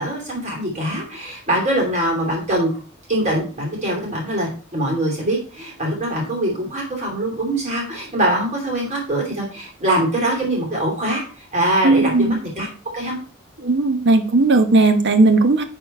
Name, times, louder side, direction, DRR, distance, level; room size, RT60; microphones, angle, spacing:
voice 1, 0.0-2.8 3.1-11.2 11.5-12.7 12.9-13.2, right 1 dB, 35° right, -1 dB, 3.0 m, -23 dB
voice 2, 11.8-12.4 13.6-15.6, right 2 dB, 55° right, 8 dB, 1.1 m, -16 dB
11.0 x 4.3 x 4.3 m, 0.39 s
head